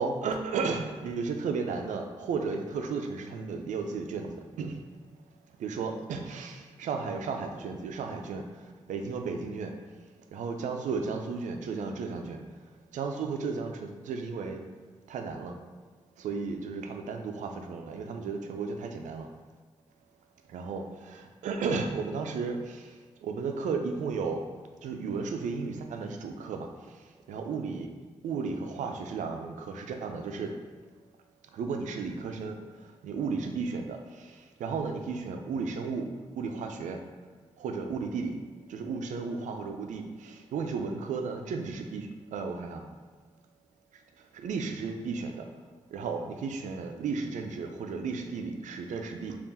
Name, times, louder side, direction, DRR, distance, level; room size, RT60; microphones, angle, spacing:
voice 1, 0.0-4.8 5.6-8.6 8.9-9.7 10.3-12.4 12.9-14.6 15.1-15.6 16.2-19.3 20.5-22.9 23.2-24.4 24.8-26.7 27.3-27.9 28.2-30.5 31.5-32.6 33.0-36.1 36.4-37.0 37.6-38.3 38.7-42.9 44.3-45.5 45.9-49.4, right 4 dB, 85° right, 4 dB, 0.4 m, -34 dB
3.6 x 2.4 x 4.0 m, 1.4 s
supercardioid pair, 40°, 12 cm